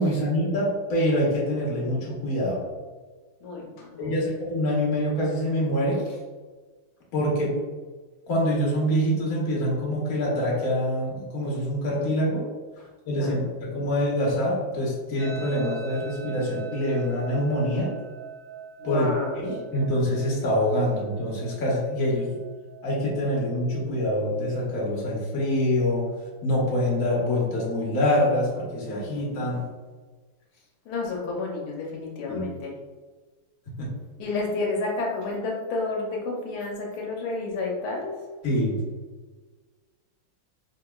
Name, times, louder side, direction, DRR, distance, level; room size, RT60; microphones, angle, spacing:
voice 1, 0.0-2.6 4.0-6.0 7.1-7.6 8.3-12.5 13.1-17.9 18.8-22.4 22.8-26.1 26.4-29.7 32.3-32.5 33.8-33.9 38.4-38.8, equal, 50° left, -5 dB, 1.2 m, -25 dB
voice 2, 3.4-4.1 13.2-13.4 18.8-19.4 30.9-32.7 34.2-38.1, left 3 dB, 80° left, -2 dB, 1.6 m, -30 dB
sound 1, 15.2-24.2, right 7 dB, 50° right, 2.2 m, -42 dB
4.7 x 2.8 x 2.2 m, 1.4 s
omnidirectional pair, 2.4 m